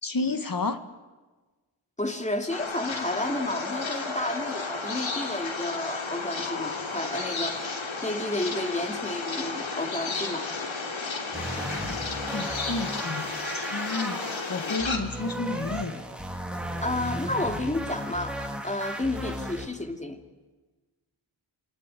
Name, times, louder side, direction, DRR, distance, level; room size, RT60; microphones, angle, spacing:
voice 1, 0.0-0.8 12.3-16.0, left 3 dB, 45° left, 9 dB, 1.9 m, -31 dB
voice 2, 2.0-7.7 8.0-10.5 16.8-20.2, left 1 dB, 15° left, 6 dB, 2.6 m, -31 dB
sound 1, 2.1-12.3, left 3 dB, 90° left, 5.8 m, -43 dB
sound 2, 2.5-15.0, left 4 dB, 70° left, 3.0 m, -33 dB
sound 3, 11.3-19.7, equal, ahead, 3.2 m, -35 dB
28.0 x 20.5 x 9.3 m, 1.3 s
wide cardioid pair, 75°, 48 cm